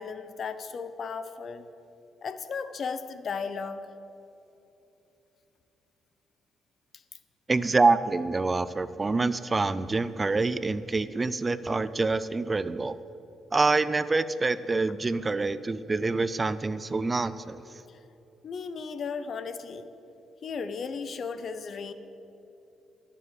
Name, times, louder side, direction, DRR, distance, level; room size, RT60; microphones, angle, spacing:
voice 1, 0.0-1.6 2.2-3.8 17.9-18.0 18.4-19.9 20.4-21.9, left 5 dB, 55° left, 12 dB, 0.7 m, -35 dB
voice 2, 7.5-13.0 13.5-17.6, right 3 dB, 25° right, 15 dB, 0.4 m, -26 dB
12.0 x 7.5 x 8.1 m, 3.0 s
cardioid pair, 90°, 0 cm